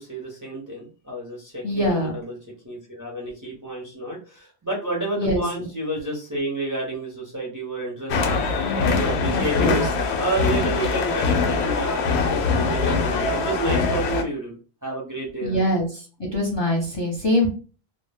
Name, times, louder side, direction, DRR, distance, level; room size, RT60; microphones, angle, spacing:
voice 1, 0.0-2.4 2.6-8.4 8.8-14.6 14.8-15.6, right 1 dB, 25° right, -2 dB, 0.5 m, -30 dB
voice 2, 1.6-2.1 5.2-5.4 8.6-9.0 9.6-9.8 15.4-16.0 16.3-17.5, left 1 dB, 30° left, -1 dB, 0.6 m, -23 dB
sound 1, 8.1-14.2, left 4 dB, 85° left, 0.8 m, -23 dB
2.1 x 2.1 x 3.2 m, 0.37 s
omnidirectional pair, 1.1 m